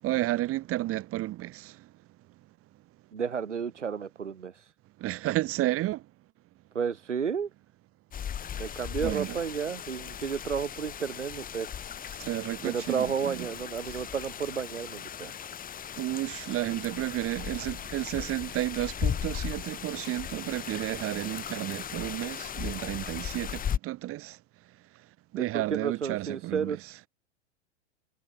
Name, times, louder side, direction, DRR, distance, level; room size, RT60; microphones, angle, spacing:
voice 1, 0.0-1.9 5.0-6.1 9.0-9.4 12.2-13.3 16.0-24.4 24.9-25.0 25.3-26.8, right 16 dB, 40° right, 6.3 m, -32 dB
voice 2, 3.1-4.7 6.7-7.5 8.6-11.8 12.6-15.3 17.6-17.7 25.3-27.1, right 6 dB, 85° right, 4.1 m, -32 dB
sound 1, 8.1-23.8, left 9 dB, 25° left, 3.0 m, -37 dB
hypercardioid pair, 95°, 35 cm